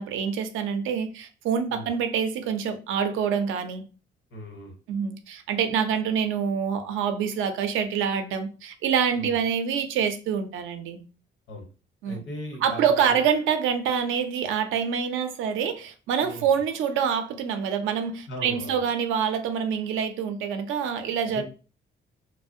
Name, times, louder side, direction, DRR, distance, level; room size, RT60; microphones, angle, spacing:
voice 1, 0.0-3.8 4.9-11.0 12.0-12.2 12.6-21.4, right 7 dB, 85° right, 0.4 m, -26 dB
voice 2, 4.3-4.7 9.1-9.3 11.5-11.6 12.1-13.2 16.2-16.4 18.3-18.8 21.2-21.4, equal, 70° left, 0.9 m, -38 dB
2.4 x 2.0 x 2.6 m
cardioid pair, 90°, 20 cm